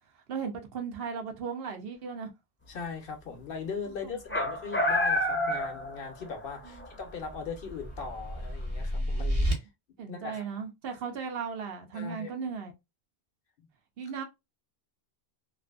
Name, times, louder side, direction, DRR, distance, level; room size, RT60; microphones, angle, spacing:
voice 1, 0.3-2.3 4.0-4.5 6.6-6.9 10.0-12.7 14.0-14.2, right 6 dB, 70° right, 0.8 m, -36 dB
voice 2, 2.7-9.6 10.1-10.5 11.9-12.3, left 5 dB, 65° left, 0.8 m, -39 dB
sound 1, 4.3-6.5 6.8-6.9 8.1-8.2, left 1 dB, 15° left, 0.5 m, -28 dB
sound 2, 6.7-9.5, equal, 40° right, 0.7 m, -31 dB
2.5 x 2.5 x 2.2 m
omnidirectional pair, 1.0 m